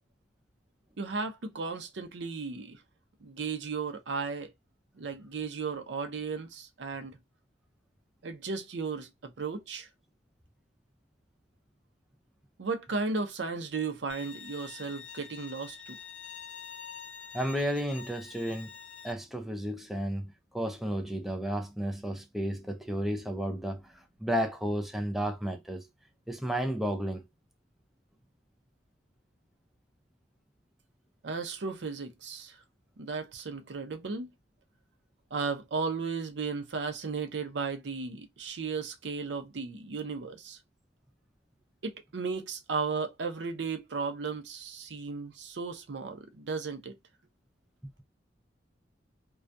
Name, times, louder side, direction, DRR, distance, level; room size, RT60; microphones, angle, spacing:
voice 1, 1.0-2.8 3.2-4.5 5.0-7.2 8.2-9.9 12.6-16.0 31.2-32.6 33.0-34.3 35.3-40.6 41.8-47.0, right 4 dB, 75° right, 0.5 m, -35 dB
Bowed string instrument, 14.1-19.1, left 6 dB, 85° left, 0.5 m, -46 dB
voice 2, 17.3-18.7 19.0-25.9 26.3-27.2, equal, ahead, 0.4 m, -32 dB
2.3 x 2.2 x 2.5 m
head